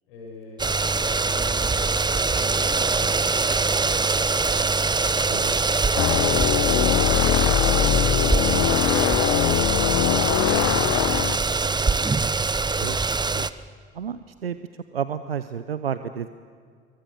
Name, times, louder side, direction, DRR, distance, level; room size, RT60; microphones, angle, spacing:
voice 1, 0.1-4.7 9.3-12.0 12.3-12.8, left 2 dB, 70° left, 0 dB, 7.3 m, -43 dB
sound 1, 0.6-13.5, right 4 dB, 15° right, 0.9 m, -23 dB
sound 2, 6.0-11.4, left 13 dB, 50° left, 1.0 m, -22 dB
voice 2, 13.9-14.6 14.9-16.3, right 8 dB, 90° right, 12 dB, 0.7 m, -31 dB
27.0 x 23.5 x 7.1 m, 2.1 s
figure-of-eight pair, 60°, 29 cm